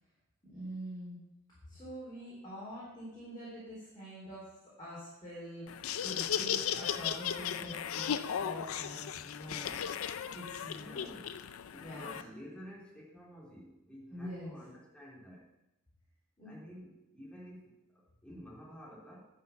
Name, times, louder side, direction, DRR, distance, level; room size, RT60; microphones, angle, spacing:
voice 1, 0.4-1.2 1.7-4.5 4.8-9.7 10.3-11.1 11.8-12.3 14.1-14.5 16.4-16.5, equal, 20° left, -9 dB, 4.0 m, -45 dB
Laughter, 5.7-12.2, left 8 dB, 75° left, 0.5 m, -36 dB
voice 2, 10.8-11.4 11.7-15.5 16.4-19.3, equal, 5° left, -5 dB, 3.3 m, -51 dB
11.0 x 5.8 x 7.0 m, 0.92 s
head